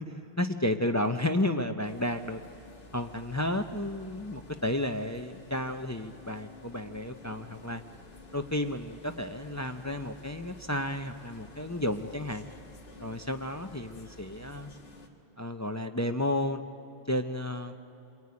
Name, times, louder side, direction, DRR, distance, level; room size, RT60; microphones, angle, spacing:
voice 1, 0.4-2.4 2.9-7.8 8.3-12.5 13.0-14.7 15.4-16.6 17.1-17.8, left 1 dB, 20° left, 7 dB, 0.6 m, -32 dB
sound 1, 1.8-15.1, left 2 dB, 60° left, 2.0 m, -51 dB
27.0 x 22.5 x 9.6 m, 2.9 s
omnidirectional pair, 1.2 m